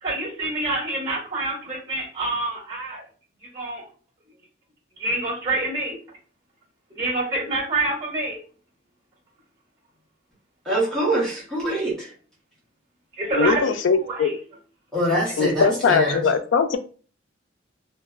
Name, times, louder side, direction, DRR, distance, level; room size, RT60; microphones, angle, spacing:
voice 1, 0.0-3.0 3.5-3.8 5.0-6.0 6.9-8.4 13.2-13.6 13.9-14.4 15.2-15.3, right 2 dB, 20° right, -6 dB, 1.4 m, -27 dB
voice 2, 10.7-12.1 14.9-16.2, right 1 dB, 5° left, -8 dB, 1.0 m, -24 dB
voice 3, 13.4-14.3 15.4-16.8, left 5 dB, 80° left, 9 dB, 0.3 m, -20 dB
2.5 x 2.2 x 2.3 m, 0.39 s
head